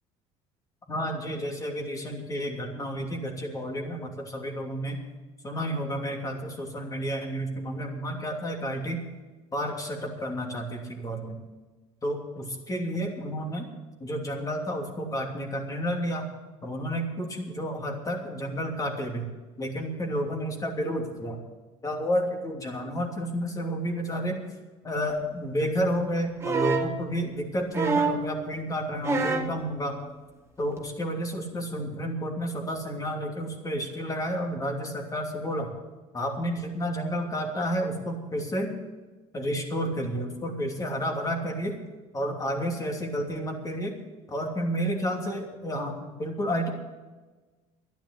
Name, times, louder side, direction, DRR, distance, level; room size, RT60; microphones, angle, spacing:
voice 1, 0.9-5.0 5.4-9.0 9.5-11.4 12.0-13.7 14.0-16.3 16.6-19.3 19.6-21.4 21.8-24.4 24.8-30.0 30.6-35.7 36.1-38.7 39.3-41.8 42.1-43.9 44.3-46.7, equal, 25° left, 2 dB, 2.9 m, -31 dB
sound 1, 26.4-26.9 27.7-28.3 29.0-29.6 30.8-30.9, right 3 dB, 20° right, 1.9 m, -26 dB
11.5 x 10.5 x 8.2 m, 1.2 s
supercardioid pair, 95°, 14 cm